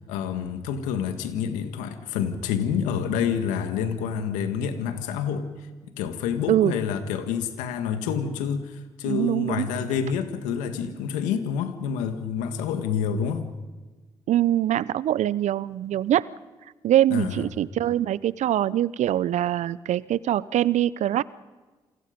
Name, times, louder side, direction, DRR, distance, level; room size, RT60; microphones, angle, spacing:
voice 1, 0.1-5.5 6.0-13.5 17.1-17.5, left 7 dB, 85° left, 8 dB, 1.7 m, -28 dB
voice 2, 9.1-9.7 14.3-16.3 16.8-21.2, right 12 dB, 70° right, 20 dB, 0.6 m, -23 dB
27.5 x 23.5 x 5.2 m, 1.3 s
hypercardioid pair, 40°, 13 cm